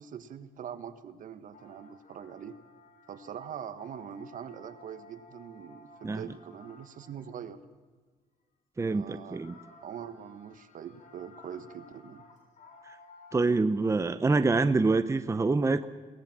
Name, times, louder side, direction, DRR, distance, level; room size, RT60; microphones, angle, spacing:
voice 1, 0.0-2.6 3.1-7.6 8.9-9.5 9.8-12.2, right 8 dB, 60° right, 11 dB, 1.5 m, -43 dB
sound 1, 1.5-7.5 9.2-13.5, left 2 dB, 55° left, 4.1 m, -55 dB
voice 2, 8.8-9.5 12.9-13.0 13.3-15.9, right 3 dB, 20° right, 11 dB, 0.8 m, -26 dB
22.0 x 18.0 x 7.5 m, 1.4 s
cardioid pair, 95°, 16 cm